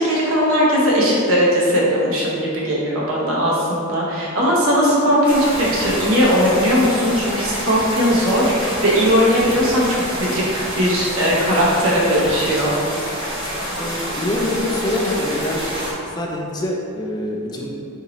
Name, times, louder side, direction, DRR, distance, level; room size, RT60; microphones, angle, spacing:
voice 1, 0.0-12.7, equal, 80° right, -5 dB, 0.8 m, -18 dB
sound 1, 5.2-15.9, equal, 25° right, 1.0 m, -27 dB
voice 2, 13.8-15.6 16.1-17.7, left 1 dB, 20° left, -1 dB, 0.3 m, -25 dB
3.9 x 2.7 x 2.9 m, 2.5 s
head